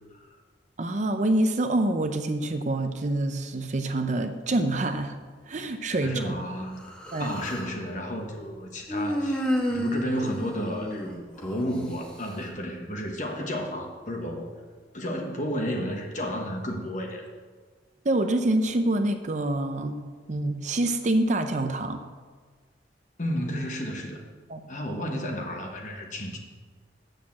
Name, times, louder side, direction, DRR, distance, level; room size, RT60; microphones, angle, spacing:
voice 1, 0.8-5.2 5.5-6.4 7.1-7.3 18.0-20.0 20.3-22.0 24.5-24.6, right 1 dB, 45° right, 7 dB, 0.6 m, -26 dB
voice 2, 6.0-6.9 7.2-9.4 9.7-14.5 14.9-17.3 23.2-24.2 24.7-26.4, equal, 45° left, 2 dB, 1.3 m, -32 dB
Human voice, 6.8-7.7 8.9-11.6, equal, 5° left, 1.3 m, -30 dB
8.3 x 6.6 x 7.3 m, 1.5 s
head